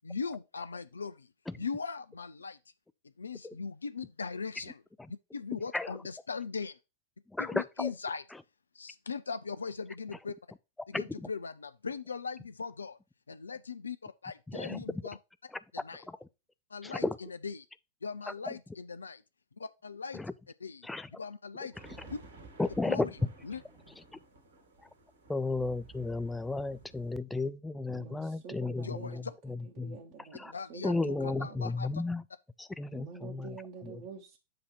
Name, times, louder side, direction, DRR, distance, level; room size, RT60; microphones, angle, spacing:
voice 1, 0.0-1.3 1.6-2.6 3.2-4.8 5.1-6.8 7.4-8.2 8.7-10.4 10.9-13.0 13.3-15.2 15.7-16.1 16.7-17.7 18.0-19.2 19.6-20.2 20.6-20.9 21.2-21.7 22.1-22.2 22.8-23.1 23.4-23.6 28.8-29.3 30.5-32.0, left 5 dB, 75° left, 0.3 m, -39 dB
voice 2, 7.3-7.9 10.9-11.3 14.5-14.8 16.1-16.2 16.8-17.2 18.3-18.4 20.1-20.3 20.8-21.1 22.6-23.1 25.3-30.0 30.3-30.5 30.8-32.2 32.6-33.6 33.8-34.0, left 3 dB, 5° left, 0.4 m, -34 dB
sound 1, 21.7-27.2, right 3 dB, 70° right, 2.1 m, -53 dB
voice 3, 27.9-29.3 29.8-31.6 32.9-34.4, right 5 dB, 45° right, 1.2 m, -47 dB
7.6 x 2.8 x 6.0 m
figure-of-eight pair, 90°, 0 cm